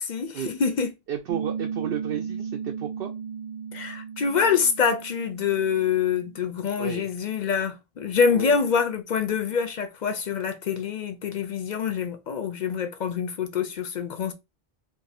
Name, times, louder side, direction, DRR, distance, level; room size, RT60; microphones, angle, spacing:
voice 1, 0.0-0.9 3.7-14.3, left 6 dB, 55° left, 0.5 m, -25 dB
voice 2, 1.1-3.1 6.8-7.1 8.3-8.6, right 9 dB, 70° right, 0.7 m, -32 dB
Piano, 1.3-6.4, right 6 dB, 50° right, 0.4 m, -35 dB
2.6 x 2.5 x 4.1 m
omnidirectional pair, 1.1 m